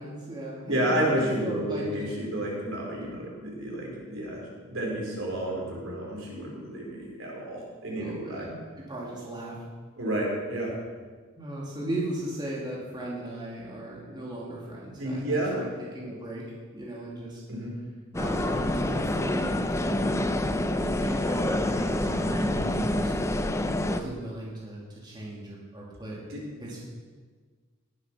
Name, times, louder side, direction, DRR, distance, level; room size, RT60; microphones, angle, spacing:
voice 1, 0.0-2.0 3.0-3.1 7.9-9.6 11.4-16.4 16.7-17.4 18.1-23.1 23.7-26.2 26.6-26.8, right 1 dB, 20° right, -5 dB, 2.6 m, -37 dB
voice 2, 0.7-8.5 10.0-10.7 15.0-15.6 17.5-17.7 22.6-22.8 26.3-26.4, right 1 dB, 65° right, -2 dB, 4.4 m, -31 dB
Train arrival - Grønland T-bane station, 18.1-24.0, left 1 dB, 15° left, 0.6 m, -27 dB
18.5 x 8.1 x 6.2 m, 1.5 s
head